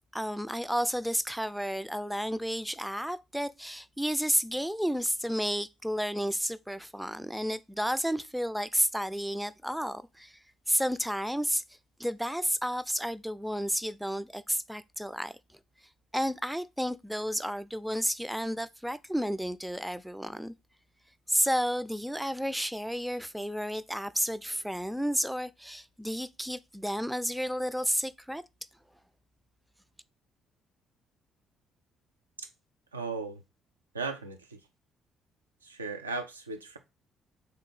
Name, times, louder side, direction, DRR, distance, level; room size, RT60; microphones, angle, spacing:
voice 1, 0.1-10.4 10.7-11.6 12.0-15.3 16.1-20.5 21.3-28.4, equal, 5° right, 0.3 m, -31 dB
voice 2, 32.9-33.4 33.9-34.6 35.6-36.8, right 4 dB, 90° right, 0.4 m, -36 dB
3.6 x 2.7 x 4.0 m
figure-of-eight pair, 45°, 0 cm